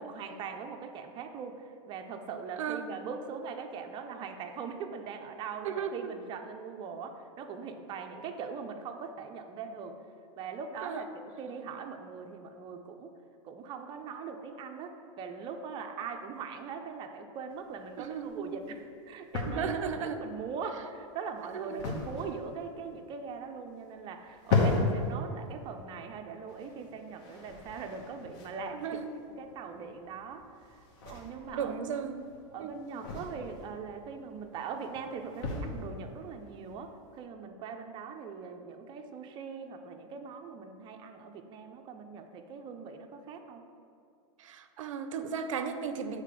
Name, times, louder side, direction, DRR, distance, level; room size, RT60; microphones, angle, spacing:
voice 1, 0.0-10.0 10.4-13.1 13.4-29.0 29.4-30.8 31.1-31.7 32.5-43.6, right 5 dB, 30° right, 4 dB, 0.5 m, -41 dB
voice 2, 2.6-2.9 5.6-6.1 10.8-11.1 18.0-18.5 19.5-20.2 21.5-21.8 28.7-29.1 31.1-31.2 31.5-32.2 32.6-32.8 44.4-46.2, right 7 dB, 90° right, 9 dB, 0.4 m, -35 dB
sound 1, 17.5-37.2, left 3 dB, 55° left, 1.1 m, -37 dB
6.5 x 3.4 x 5.0 m, 2.5 s
supercardioid pair, 130°, 16 cm